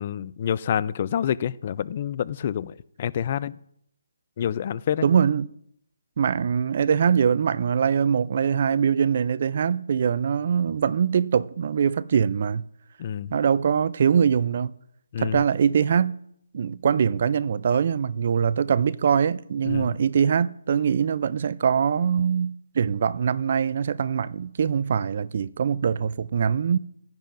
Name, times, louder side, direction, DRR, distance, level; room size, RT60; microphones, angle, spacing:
voice 1, 0.0-3.5 4.4-5.1 13.0-13.3 15.1-15.4 19.6-19.9, left 9 dB, 35° left, 0.4 m, -27 dB
voice 2, 5.0-5.5 6.2-12.6 13.3-14.7 15.2-16.2 16.5-26.8, right 7 dB, 45° right, 0.4 m, -23 dB
15.5 x 10.5 x 2.6 m
hypercardioid pair, 160°, 0 cm